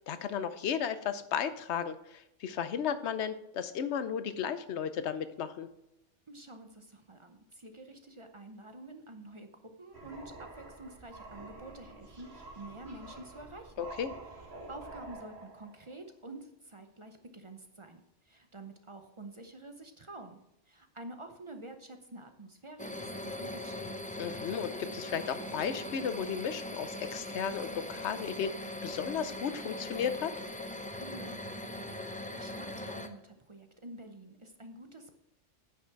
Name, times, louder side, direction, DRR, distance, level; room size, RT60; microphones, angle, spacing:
voice 1, 0.0-5.7 13.8-14.1 24.2-30.3, left 7 dB, 65° left, 12 dB, 0.9 m, -34 dB
voice 2, 6.3-9.5 9.8-13.8 14.7-20.4 20.7-24.2 31.0-35.2, right 2 dB, 35° right, 6 dB, 0.6 m, -49 dB
sound 1, 9.9-15.9, right 2 dB, 60° right, 2.0 m, -48 dB
sound 2, 22.8-33.1, left 1 dB, 10° left, 0.4 m, -40 dB
9.6 x 5.8 x 4.6 m, 0.85 s
omnidirectional pair, 1.3 m